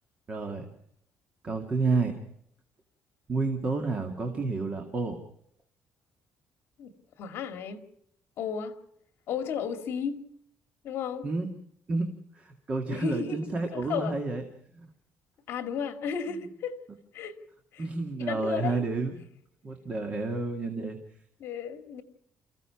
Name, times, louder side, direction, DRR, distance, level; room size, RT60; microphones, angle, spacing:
voice 1, 0.3-0.7 1.4-2.2 3.3-5.2 11.2-11.5 11.9-14.4 14.7-14.9 16.3-16.4 17.8-19.2 19.6-21.0, right 3 dB, 25° right, 2.1 m, -30 dB
voice 2, 7.2-7.8 8.4-8.7 9.3-10.2 10.8-11.3 12.9-13.4 13.7-14.1 15.5-16.7 17.1-17.4 17.7-17.8 18.2-18.9 21.4-22.0, left 7 dB, 60° left, 2.1 m, -33 dB
29.0 x 15.5 x 5.9 m
cardioid pair, 175°, 5 cm